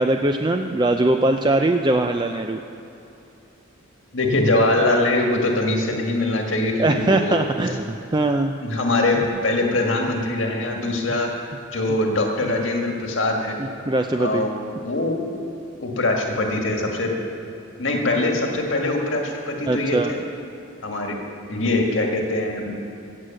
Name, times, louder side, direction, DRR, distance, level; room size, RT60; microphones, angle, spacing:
voice 1, 0.0-2.6 6.8-8.5 13.9-14.4 19.7-20.1, right 2 dB, 20° right, 5 dB, 0.4 m, -21 dB
voice 2, 4.1-7.4 8.6-11.4 11.7-13.6 14.2-14.5 14.8-15.3 15.8-17.1 17.8-20.2 20.8-21.2 21.5-22.7, left 2 dB, 70° left, 1 dB, 1.7 m, -22 dB
16.5 x 8.0 x 7.5 m, 2.9 s
head